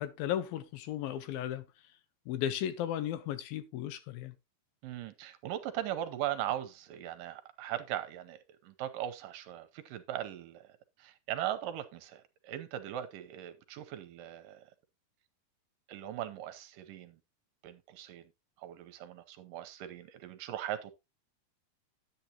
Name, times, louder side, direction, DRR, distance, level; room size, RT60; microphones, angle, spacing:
voice 1, 0.0-1.6 2.3-4.3, left 11 dB, 80° left, 2.7 m, -35 dB
voice 2, 4.8-10.7 11.0-14.6 15.9-17.2 17.6-18.2 18.6-20.9, right 12 dB, 75° right, 2.2 m, -39 dB
10.5 x 8.1 x 2.8 m
omnidirectional pair, 4.3 m